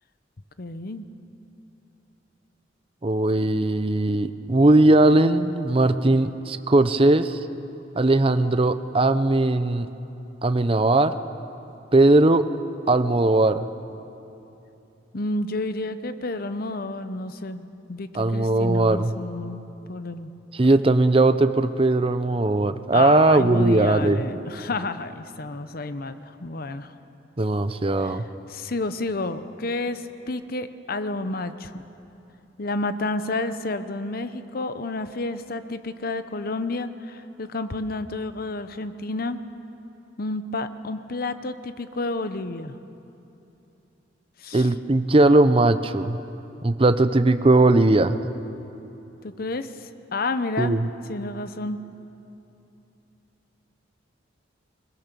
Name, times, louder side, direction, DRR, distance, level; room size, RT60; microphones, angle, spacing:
voice 1, 0.6-1.1 15.1-20.3 22.9-26.9 28.0-28.2 28.5-31.8 32.6-39.4 40.2-42.8 44.4-44.7 49.2-50.8 51.1-51.8, left 2 dB, 50° left, 11 dB, 0.8 m, -30 dB
voice 2, 3.0-7.4 8.0-9.9 10.4-11.1 11.9-12.4 12.9-13.7 18.1-19.1 20.5-24.2 27.4-28.2 44.5-46.2 46.6-48.2 50.6-50.9, right 2 dB, 30° right, 11 dB, 0.7 m, -19 dB
21.5 x 21.0 x 6.9 m, 3.0 s
head